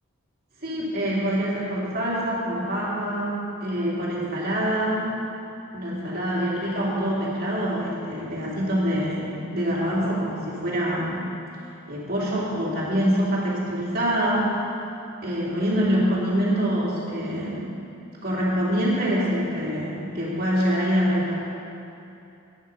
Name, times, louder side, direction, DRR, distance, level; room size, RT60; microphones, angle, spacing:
voice 1, 0.6-5.1 5.7-11.2 11.9-14.5 15.2-17.7 18.2-21.3, equal, 45° right, -6 dB, 2.8 m, -25 dB
11.0 x 9.7 x 5.4 m, 2.7 s
head